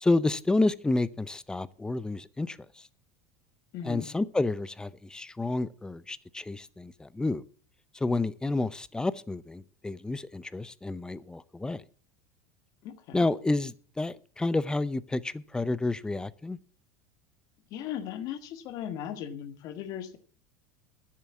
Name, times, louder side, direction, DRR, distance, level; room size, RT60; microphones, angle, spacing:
voice 1, 0.0-2.6 3.8-7.4 8.0-11.8 13.1-16.6, left 2 dB, 10° left, 19 dB, 0.6 m, -29 dB
voice 2, 3.7-4.1 12.8-13.3 17.7-20.2, left 9 dB, 55° left, 10 dB, 1.6 m, -37 dB
10.5 x 7.6 x 7.1 m, 0.43 s
hypercardioid pair, 100°, 8 cm